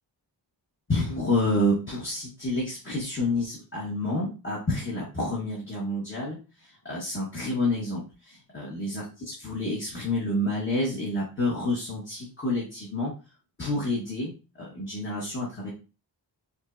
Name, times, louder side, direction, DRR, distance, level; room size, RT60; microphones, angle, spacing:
voice 1, 0.9-6.4 6.8-13.1 13.6-14.3 14.6-15.7, left 1 dB, 30° left, -6 dB, 1.2 m, -29 dB
5.1 x 2.2 x 2.5 m, 0.32 s
wide cardioid pair, 115°, 42 cm